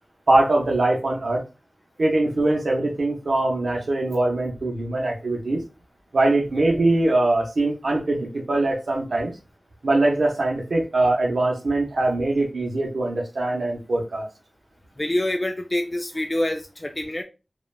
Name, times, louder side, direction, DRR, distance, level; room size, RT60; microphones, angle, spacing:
voice 1, 0.3-1.4 2.0-5.6 6.1-9.3 9.8-14.2, right 2 dB, 85° right, -1 dB, 0.6 m, -22 dB
voice 2, 15.0-17.2, left 1 dB, 30° left, 4 dB, 0.3 m, -26 dB
3.1 x 2.2 x 2.2 m, 0.29 s
wide cardioid pair, 60°, 0 cm